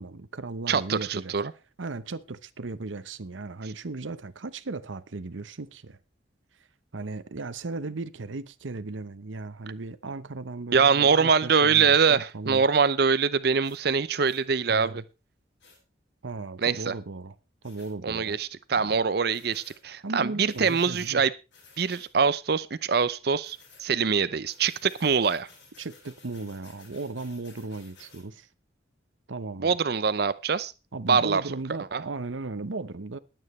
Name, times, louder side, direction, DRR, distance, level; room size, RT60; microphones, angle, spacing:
voice 1, 0.0-1.3 1.8-6.0 6.9-12.6 14.7-15.0 16.2-17.3 17.6-18.4 18.8-19.0 20.0-21.2 25.8-28.5 29.3-29.7 30.9-33.2, right 3 dB, 90° right, 0.8 m, -36 dB
voice 2, 0.7-1.5 10.7-15.0 16.6-16.9 18.0-21.3 21.8-25.5 29.6-30.7 31.1-31.4 31.9-32.0, right 5 dB, 55° right, 0.6 m, -24 dB
sound 1, 13.6-13.8 14.2-14.4 15.6-15.8 17.6-17.9 19.3-19.8 20.5-21.1 21.5-22.1 23.4-23.9 24.4-28.2, left 4 dB, 75° left, 7.9 m, -55 dB
20.5 x 8.9 x 3.1 m
head